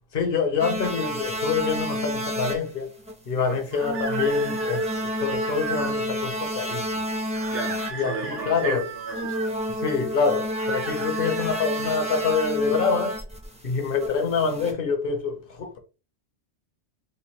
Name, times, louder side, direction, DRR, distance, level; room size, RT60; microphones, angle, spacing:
voice 1, 0.1-2.9 3.3-6.8 7.9-8.8 9.8-13.2 13.6-15.8, left 5 dB, 55° left, 0.9 m, -26 dB
sound 1, 0.6-2.7 3.0-3.1 3.8-7.9 8.3-8.5 9.1-14.7, equal, 5° right, 0.6 m, -30 dB
sound 2, 3.7-6.0 7.3-9.5 10.5-12.6, right 6 dB, 80° right, 1.1 m, -36 dB
voice 2, 7.5-9.4, right 3 dB, 55° right, 1.4 m, -34 dB
3.2 x 2.2 x 4.3 m
omnidirectional pair, 1.2 m